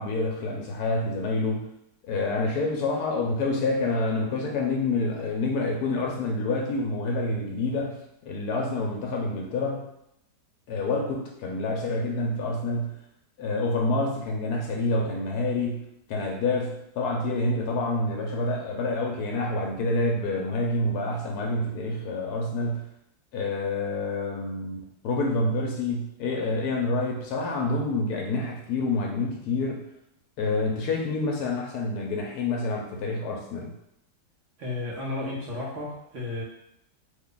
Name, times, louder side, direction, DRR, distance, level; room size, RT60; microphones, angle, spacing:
voice 1, 0.0-1.7 2.1-9.9 10.7-13.0 13.4-22.9 23.3-29.8 30.4-33.7, left 2 dB, 70° left, 0 dB, 1.0 m, -28 dB
voice 2, 34.6-36.4, left 2 dB, 55° right, -5 dB, 1.0 m, -33 dB
3.0 x 2.2 x 3.8 m, 0.80 s
omnidirectional pair, 1.8 m